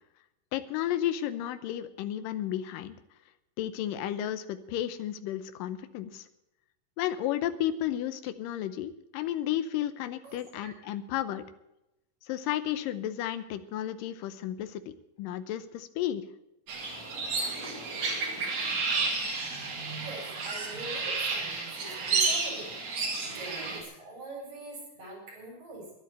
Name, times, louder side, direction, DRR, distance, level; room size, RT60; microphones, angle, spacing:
voice 1, 0.5-3.0 3.6-6.3 7.0-11.5 12.2-16.2, left 12 dB, 85° left, 11 dB, 2.5 m, -33 dB
voice 2, 10.2-10.7 20.0-22.8 23.2-25.9, right 2 dB, 75° right, 0 dB, 6.3 m, -43 dB
sound 1, 16.7-23.8, right 4 dB, 50° right, 3.1 m, -31 dB
12.0 x 11.0 x 7.9 m, 0.89 s
omnidirectional pair, 3.9 m